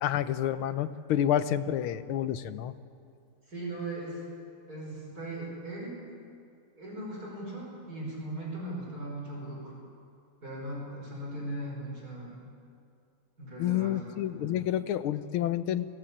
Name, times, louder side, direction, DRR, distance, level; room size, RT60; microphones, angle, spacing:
voice 1, 0.0-2.7 13.6-15.9, left 11 dB, 85° left, 12 dB, 1.7 m, -29 dB
voice 2, 3.5-4.2 4.7-6.0 6.8-9.7 10.4-12.3 13.4-14.0 14.4-14.5, right 1 dB, 45° right, -3 dB, 6.1 m, -38 dB
23.0 x 16.5 x 8.7 m, 2.4 s
omnidirectional pair, 2.3 m